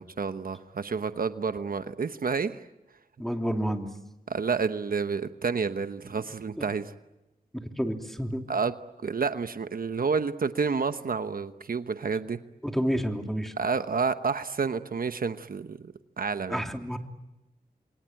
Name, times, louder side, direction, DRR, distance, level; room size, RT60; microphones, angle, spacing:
voice 1, 0.0-2.6 4.3-6.9 8.5-8.7 9.0-12.4 13.6-15.9 16.2-16.6, right 5 dB, 65° right, 10 dB, 1.0 m, -29 dB
voice 2, 3.2-3.9 7.5-8.5 12.6-13.5 16.5-17.0, equal, ahead, 4 dB, 3.2 m, -29 dB
28.5 x 23.0 x 9.0 m, 1.0 s
cardioid pair, 55°, 16 cm